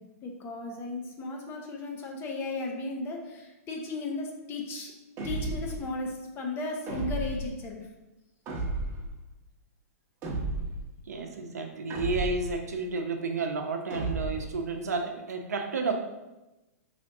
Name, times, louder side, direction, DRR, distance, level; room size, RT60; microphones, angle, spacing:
voice 1, 0.2-4.9 5.2-7.8, left 2 dB, 25° left, 1 dB, 0.8 m, -35 dB
sound 1, 5.2-5.8 6.9-7.5 8.5-9.1 10.2-10.9 11.9-12.6 13.9-14.5, right 2 dB, 30° right, 0.9 m, -33 dB
voice 2, 11.1-15.9, right 3 dB, 85° right, 4 dB, 0.7 m, -31 dB
5.1 x 3.3 x 2.6 m, 1.0 s
hypercardioid pair, 125°, 9 cm